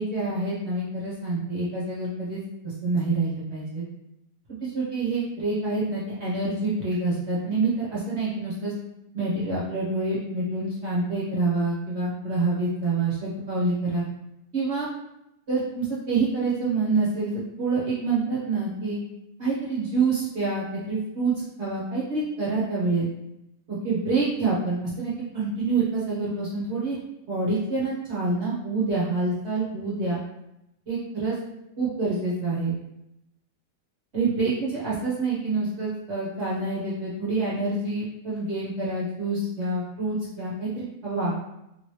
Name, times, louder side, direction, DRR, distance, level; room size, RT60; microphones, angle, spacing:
voice 1, 0.0-3.8 4.6-8.7 9.1-14.0 14.5-14.9 15.5-19.0 19.4-21.3 21.6-23.1 23.7-27.0 27.3-30.2 30.9-31.4 31.8-32.7 34.1-41.4, right 3 dB, 50° right, -7 dB, 1.0 m, -27 dB
2.9 x 2.9 x 3.1 m, 0.86 s
omnidirectional pair, 1.7 m